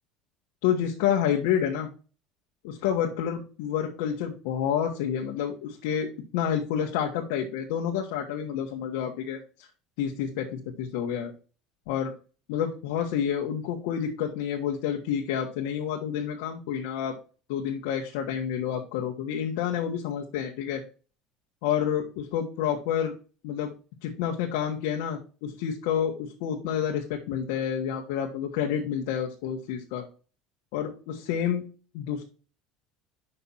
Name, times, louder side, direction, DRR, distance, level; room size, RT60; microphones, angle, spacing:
voice 1, 0.6-1.9 2.6-9.7 10.0-11.3 11.9-12.1 12.5-17.2 17.5-20.8 21.6-23.1 23.4-23.7 24.0-30.1 30.7-31.6 31.9-32.2, left 9 dB, 85° left, 1 dB, 1.3 m, -29 dB
6.0 x 5.6 x 5.6 m, 0.37 s
cardioid pair, 160°, 0 cm